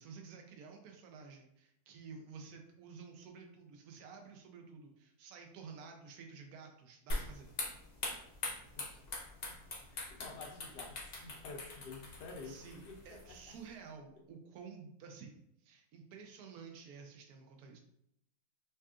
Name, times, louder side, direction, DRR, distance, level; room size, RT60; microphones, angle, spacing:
voice 1, 0.0-7.5 10.3-10.5 12.4-17.8, right 5 dB, 75° right, 3 dB, 1.1 m, -52 dB
sound 1, 7.1-13.7, left 2 dB, 45° left, 0.9 m, -43 dB
voice 2, 9.9-13.3, left 4 dB, 90° left, 0 dB, 1.4 m, -50 dB
5.3 x 2.4 x 2.4 m, 0.75 s
omnidirectional pair, 1.7 m